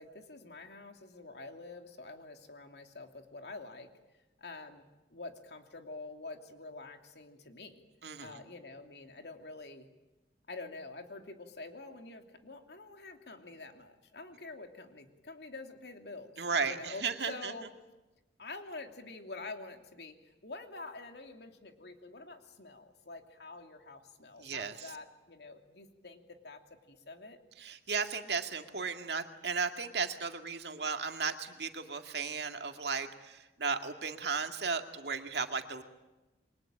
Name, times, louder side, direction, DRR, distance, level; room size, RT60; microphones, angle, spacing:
voice 1, 0.0-3.9 4.4-4.8 5.1-7.8 8.2-9.9 10.5-17.7 18.4-20.1 20.4-26.6 26.9-27.4, left 3 dB, 70° left, 5 dB, 2.8 m, -47 dB
voice 2, 8.0-8.4 16.4-17.5 24.4-24.9 27.6-35.8, right 5 dB, 70° right, 6 dB, 2.2 m, -35 dB
28.0 x 23.0 x 8.9 m, 1.1 s
head